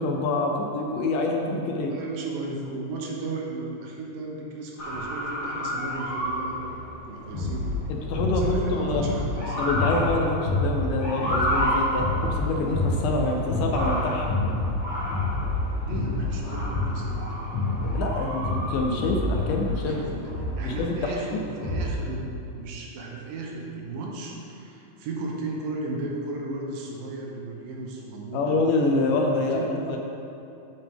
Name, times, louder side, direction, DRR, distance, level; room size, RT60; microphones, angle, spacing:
voice 1, 0.0-1.9 7.9-9.0 9.6-14.3 17.8-20.2 20.6-21.4 28.3-30.0, left 2 dB, 80° left, 1 dB, 2.0 m, -26 dB
voice 2, 1.9-6.8 7.1-7.9 8.3-9.6 13.1-13.4 15.9-17.3 19.5-20.1 20.4-28.6 29.3-30.0, right 3 dB, 80° right, -1 dB, 2.6 m, -35 dB
Motor vehicle (road) / Siren, 4.8-20.3, equal, 40° left, 2.2 m, -32 dB
sound 1, 7.3-22.1, left 2 dB, 55° left, 2.1 m, -28 dB
9.3 x 5.7 x 3.6 m, 2.7 s
omnidirectional pair, 4.0 m